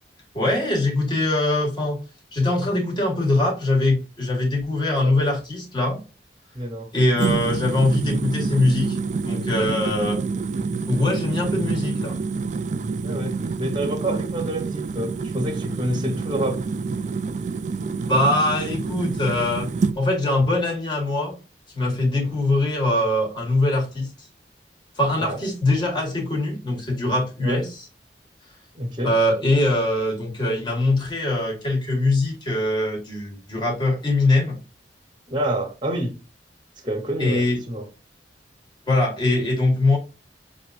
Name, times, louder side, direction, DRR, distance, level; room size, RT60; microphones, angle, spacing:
voice 1, 0.3-2.0 2.3-6.0 6.9-9.0 9.2-10.2 10.9-12.2 18.0-19.7 20.0-21.4 21.7-24.1 25.0-27.9 29.0-34.6 37.2-37.6 38.9-40.0, left 2 dB, 25° left, 1.7 m, -22 dB
voice 2, 6.5-6.9 13.0-16.6 22.2-22.3 25.2-25.4 27.4-27.6 28.7-29.1 35.3-36.1 36.8-37.9, right 1 dB, 25° right, 0.9 m, -28 dB
sound 1, 7.2-20.0, right 4 dB, 40° right, 0.3 m, -27 dB
6.6 x 2.6 x 2.4 m
head